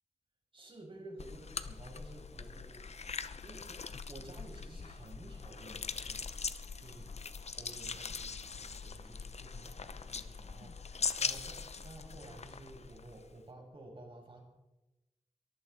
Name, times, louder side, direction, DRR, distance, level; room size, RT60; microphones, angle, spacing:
voice 1, 0.5-7.1 7.4-14.4, right 2 dB, 50° right, 0 dB, 5.9 m, -53 dB
lemon squeezed, 1.2-13.4, left 5 dB, 65° left, 0.8 m, -41 dB
23.0 x 15.0 x 4.1 m, 1.0 s
wide cardioid pair, 100°, 12 cm